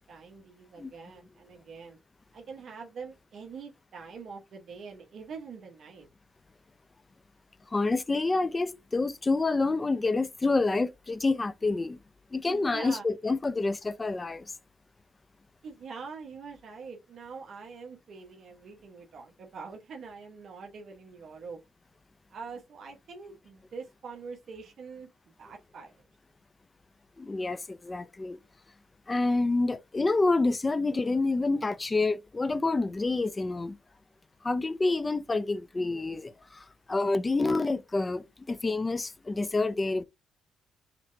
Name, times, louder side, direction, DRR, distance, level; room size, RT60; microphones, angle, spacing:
voice 1, 0.1-2.0 2.3-6.1 12.5-13.0 15.6-21.6 22.3-25.1 25.4-25.9, right 5 dB, 60° right, 1.2 m, -44 dB
voice 2, 7.7-12.0 12.3-14.4 27.2-28.4 29.1-33.8 34.4-40.0, left 3 dB, 25° left, 0.5 m, -28 dB
5.8 x 3.2 x 2.7 m
cardioid pair, 90°, 0 cm